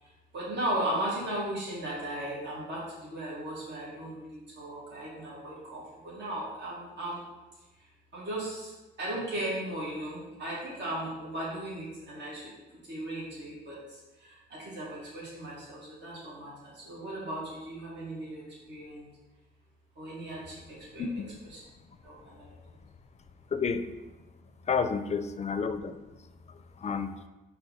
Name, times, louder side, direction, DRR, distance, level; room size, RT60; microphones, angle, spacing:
voice 1, 0.0-7.2 8.1-12.5 12.8-19.1 20.0-21.0 21.4-21.6 22.0-22.5, right 1 dB, 60° right, -7 dB, 2.2 m, -37 dB
voice 2, 21.0-21.3 23.5-23.8 24.7-26.0 26.8-27.1, left 5 dB, 35° left, 11 dB, 0.5 m, -30 dB
5.5 x 3.4 x 5.6 m, 1.1 s
cardioid pair, 90°, 20 cm